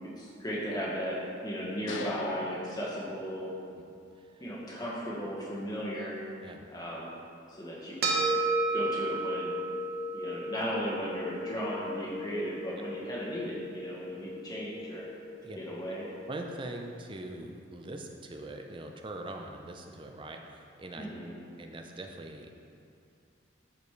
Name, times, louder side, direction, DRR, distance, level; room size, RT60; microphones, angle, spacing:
voice 1, 0.0-3.5 4.4-6.2 6.7-7.1 7.5-8.2 8.7-9.5 10.1-15.1 15.6-16.1 21.0-21.3, equal, 20° left, -5 dB, 1.4 m, -36 dB
sound 1, 1.9-3.7, left 5 dB, 70° left, 0.4 m, -43 dB
sound 2, 8.0-16.6, right 2 dB, 55° right, 1.1 m, -34 dB
voice 2, 16.3-21.1 21.6-22.5, right 1 dB, 25° right, 3 dB, 0.5 m, -42 dB
11.0 x 5.2 x 3.2 m, 2.5 s
head